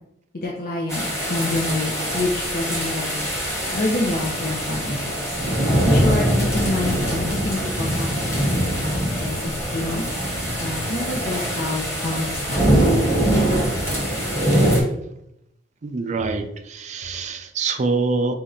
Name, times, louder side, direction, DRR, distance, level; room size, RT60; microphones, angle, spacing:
voice 1, 0.3-3.2 3.7-5.4 5.8-12.9, left 2 dB, 55° left, -2 dB, 0.7 m, -28 dB
sound 1, 0.9-14.8, equal, 15° left, 1.2 m, -23 dB
voice 2, 15.8-18.3, right 4 dB, 40° right, 6 dB, 0.4 m, -25 dB
4.2 x 2.8 x 3.7 m, 0.78 s
head